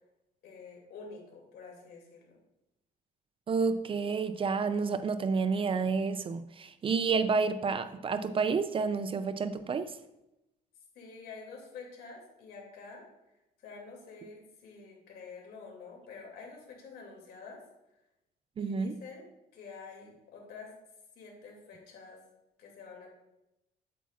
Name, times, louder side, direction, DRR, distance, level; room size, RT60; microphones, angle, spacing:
voice 1, 0.4-2.4 10.9-13.0 13.6-17.6 18.6-19.2 19.5-20.7 21.2-22.2 22.6-23.1, left 4 dB, 70° left, 2.5 m, -48 dB
voice 2, 3.5-10.0 18.6-19.0, right 5 dB, 30° right, 0.4 m, -30 dB
8.4 x 8.2 x 2.4 m
cardioid pair, 110°, 17 cm